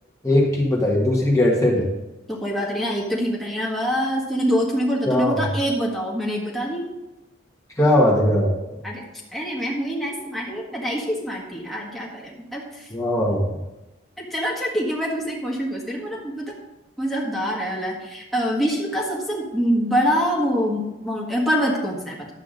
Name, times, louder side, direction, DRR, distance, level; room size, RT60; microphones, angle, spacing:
voice 1, 0.2-1.9 5.0-5.4 7.8-8.6 12.9-13.6, left 1 dB, 15° left, -3 dB, 1.5 m, -19 dB
voice 2, 2.3-6.9 8.8-9.0 9.3-12.9 14.2-16.5 17.0-22.3, equal, ahead, -4 dB, 1.5 m, -25 dB
11.5 x 8.2 x 3.9 m, 1.0 s
head